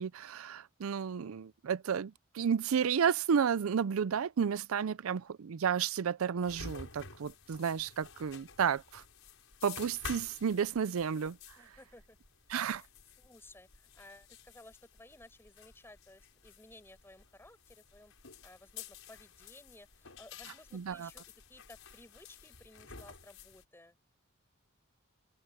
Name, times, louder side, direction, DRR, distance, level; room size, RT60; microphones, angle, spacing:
voice 1, 0.0-9.0 9.6-11.4 12.5-12.8 20.7-21.1, right 7 dB, 85° right, 0.4 m, -32 dB
sound 1, 6.4-23.6, left 5 dB, 70° left, 6.9 m, -51 dB
voice 2, 11.6-12.2 12.8-12.9 13.2-18.1 18.4-21.2 21.5-24.0, left 1 dB, 10° left, 6.8 m, -57 dB
head